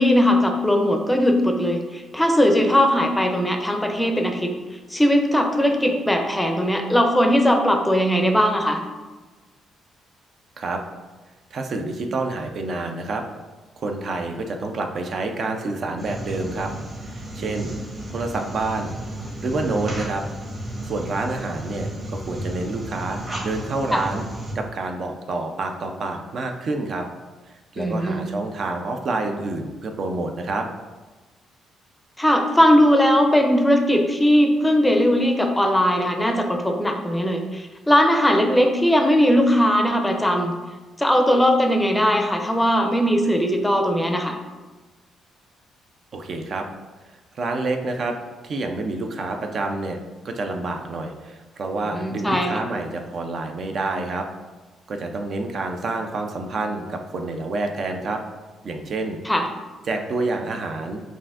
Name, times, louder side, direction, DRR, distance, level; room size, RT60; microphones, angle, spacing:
voice 1, 0.0-4.5 4.9-8.8 23.9-24.0 27.8-28.3 32.2-40.5 41.0-44.3 51.9-52.5 59.3-59.4, equal, 10° left, 4 dB, 0.5 m, -19 dB
voice 2, 11.5-13.2 13.8-16.7 17.0-17.8 18.1-18.9 19.4-20.2 20.8-24.2 24.5-27.1 27.7-30.7 46.1-46.7 47.4-48.2 48.4-50.0 50.2-54.3 54.9-58.2 58.6-59.2 59.9-61.0, right 3 dB, 55° right, 4 dB, 0.4 m, -28 dB
sound 1, 16.0-24.5, right 1 dB, 35° right, 1.2 m, -33 dB
5.5 x 2.5 x 2.4 m, 1.3 s
cardioid pair, 90°, 0 cm